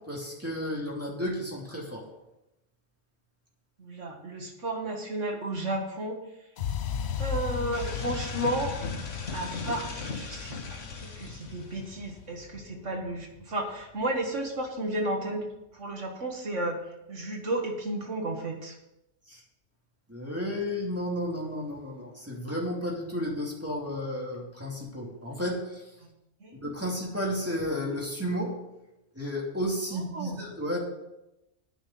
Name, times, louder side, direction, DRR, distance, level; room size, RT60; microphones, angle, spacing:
voice 1, 0.0-2.0 19.3-19.4 20.1-25.8 26.6-28.6 29.2-30.8, equal, 10° right, -3 dB, 2.7 m, -32 dB
voice 2, 3.8-6.2 7.2-8.8 9.3-15.4 15.7-16.8 17.1-18.8 26.4-26.6 29.9-30.4, right 1 dB, 75° right, 2 dB, 2.0 m, -33 dB
sound 1, 6.6-14.5, left 8 dB, 60° left, 0.9 m, -37 dB
sound 2, 7.7-12.2, left 4 dB, 80° left, 1.6 m, -38 dB
9.7 x 5.7 x 8.4 m, 0.91 s
omnidirectional pair, 1.3 m